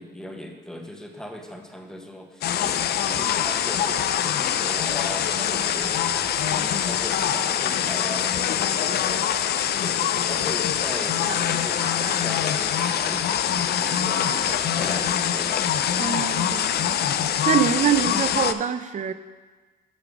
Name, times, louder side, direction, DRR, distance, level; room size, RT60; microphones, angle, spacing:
voice 1, 0.0-9.3 9.8-13.3 13.6-15.7, equal, 5° left, 3 dB, 1.0 m, -38 dB
sound 1, 2.4-18.5, left 9 dB, 55° left, 0.4 m, -24 dB
sound 2, 11.2-15.3, right 2 dB, 85° right, 1.8 m, -39 dB
voice 2, 16.0-17.0 17.5-19.1, right 8 dB, 40° right, 11 dB, 0.5 m, -24 dB
8.9 x 3.4 x 6.0 m, 1.3 s
cardioid pair, 90°, 20 cm